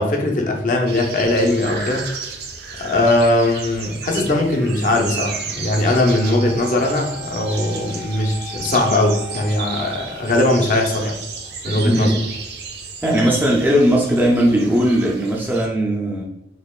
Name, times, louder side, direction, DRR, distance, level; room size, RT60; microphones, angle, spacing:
voice 1, 0.0-2.0 2.8-11.1 11.6-12.1, left 1 dB, 45° left, 2 dB, 0.5 m, -19 dB
sound 1, 0.9-15.7, right 5 dB, 60° right, 0.5 m, -33 dB
Wind instrument woodwind instrument, 5.8-11.0, left 5 dB, 70° left, 1.5 m, -39 dB
voice 2, 11.7-12.2 13.0-16.2, equal, 10° right, -2 dB, 0.4 m, -18 dB
4.0 x 2.9 x 2.3 m, 0.89 s
head